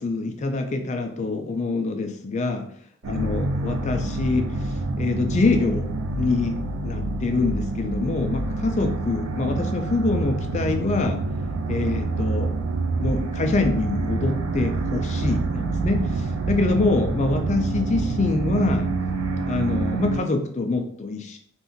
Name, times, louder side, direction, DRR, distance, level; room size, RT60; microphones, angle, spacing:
voice 1, 0.0-2.7 3.1-4.7 5.0-6.6 6.8-11.2 11.7-12.5 13.0-18.9 19.4-21.4, left 3 dB, 30° left, 5 dB, 0.3 m, -25 dB
sound 1, 3.0-20.2, right 3 dB, 75° right, 0.4 m, -27 dB
2.5 x 2.2 x 3.7 m, 0.63 s
head